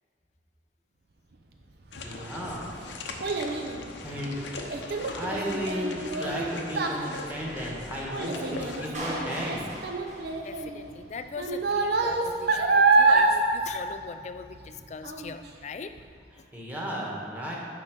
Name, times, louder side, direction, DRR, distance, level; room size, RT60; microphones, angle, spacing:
sound 1, 1.9-8.9, left 3 dB, 85° left, 0.8 m, -40 dB
voice 1, 2.0-2.7 4.0-4.4 5.1-9.6 16.5-17.6, equal, 10° right, -4 dB, 1.5 m, -34 dB
Child speech kid speaking, 2.0-14.7 15.0-15.5 16.0-16.1, right 3 dB, 60° right, 0.7 m, -27 dB
Clapping, 8.9-11.0, equal, 40° right, 1.6 m, -38 dB
voice 2, 10.4-15.9 16.4-16.6, left 5 dB, 40° left, 9 dB, 0.4 m, -41 dB
9.9 x 3.8 x 6.2 m, 2.3 s
head